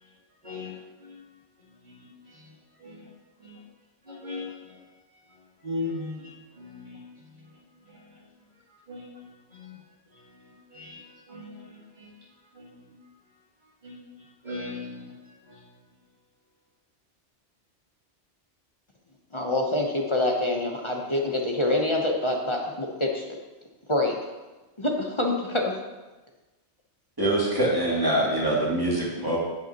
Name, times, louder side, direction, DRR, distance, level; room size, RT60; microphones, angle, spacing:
voice 1, 4.1-4.5 5.6-6.2 6.6-7.0 8.9-9.1 9.5-9.8 10.4-11.0 11.3-11.5 12.0-12.1 12.6-12.9 13.8-14.0 14.4-15.1, left 2 dB, 40° right, -7 dB, 2.1 m, -37 dB
voice 2, 19.3-23.3 23.9-24.1 24.8-25.7, left 1 dB, 25° left, 0 dB, 0.9 m, -26 dB
voice 3, 27.2-29.4, right 1 dB, 20° right, -6 dB, 2.8 m, -24 dB
16.0 x 5.6 x 3.0 m, 1.1 s
omnidirectional pair, 1.2 m